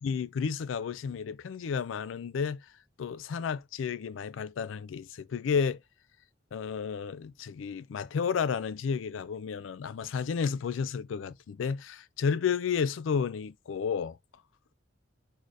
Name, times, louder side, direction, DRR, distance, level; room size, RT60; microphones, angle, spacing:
voice 1, 0.0-2.6 3.0-5.8 6.5-14.2, left 6 dB, 85° left, 0.4 m, -32 dB
4.7 x 4.2 x 2.6 m
head